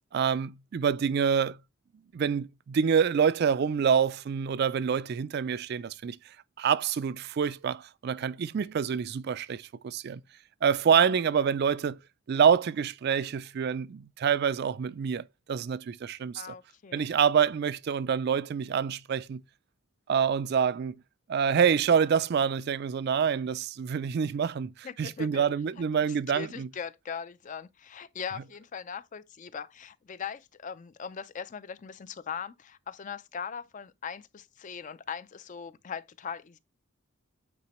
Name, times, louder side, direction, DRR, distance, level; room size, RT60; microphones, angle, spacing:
voice 1, 0.1-1.6 2.1-6.2 6.6-10.2 10.6-12.0 12.3-16.4 16.9-19.4 20.1-20.9 21.3-26.7, right 7 dB, 50° right, 0.3 m, -26 dB
voice 2, 16.3-17.1 24.8-25.5 26.3-36.6, left 7 dB, 35° left, 0.4 m, -40 dB
8.6 x 4.2 x 3.0 m
head